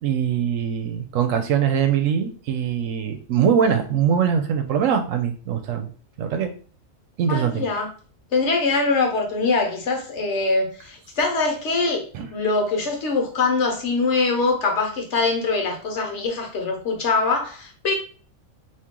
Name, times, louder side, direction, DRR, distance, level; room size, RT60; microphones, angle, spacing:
voice 1, 0.0-5.9 6.2-6.5 7.2-7.6 12.1-12.3, right 8 dB, 85° right, 1.0 m, -22 dB
voice 2, 7.3-7.9 8.3-12.1 12.3-17.9, left 3 dB, 65° left, 1.2 m, -23 dB
2.9 x 2.7 x 3.6 m
omnidirectional pair, 1.3 m